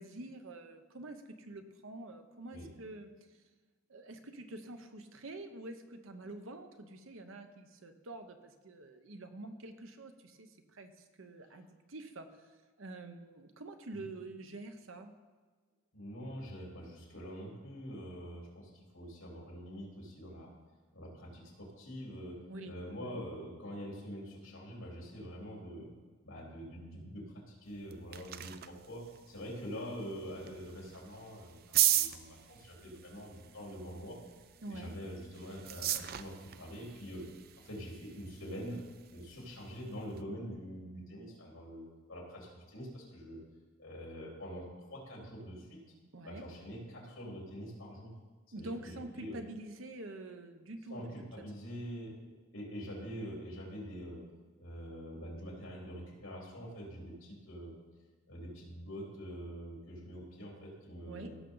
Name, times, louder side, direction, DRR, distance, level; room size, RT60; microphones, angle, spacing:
voice 1, 0.0-3.1 3.9-12.4 12.8-15.1 22.5-22.8 34.6-34.9 46.1-46.4 48.5-51.3 61.0-61.4, right 2 dB, 75° right, 7 dB, 0.9 m, -47 dB
voice 2, 15.9-20.5 20.9-25.9 26.2-34.2 34.7-37.3 37.6-38.8 39.1-43.4 43.8-45.8 46.2-48.1 48.5-49.4 50.9-54.2 54.6-57.7 58.3-61.4, equal, 75° left, -3 dB, 3.8 m, -45 dB
sound 1, 27.7-40.2, right 12 dB, 45° right, 0.4 m, -38 dB
16.5 x 6.6 x 3.9 m, 1.3 s
head